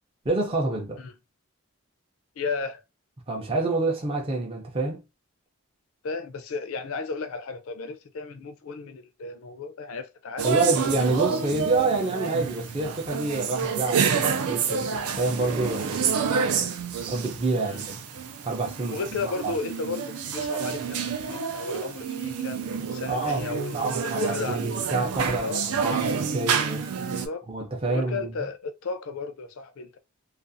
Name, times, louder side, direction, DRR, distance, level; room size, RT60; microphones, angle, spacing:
voice 1, 0.2-1.0 3.3-5.0 10.4-18.0 18.4-19.5 23.1-26.9 27.5-28.3, right 3 dB, 25° right, 0.5 m, -28 dB
voice 2, 2.4-2.8 6.0-10.6 10.9-11.0 17.6-17.8 18.9-22.6 22.9-24.6 25.4-25.8 27.0-27.5 27.9-30.0, left 4 dB, 70° left, 0.5 m, -34 dB
sound 1, 10.4-27.3, right 6 dB, 85° right, 0.4 m, -29 dB
2.4 x 2.3 x 2.6 m
head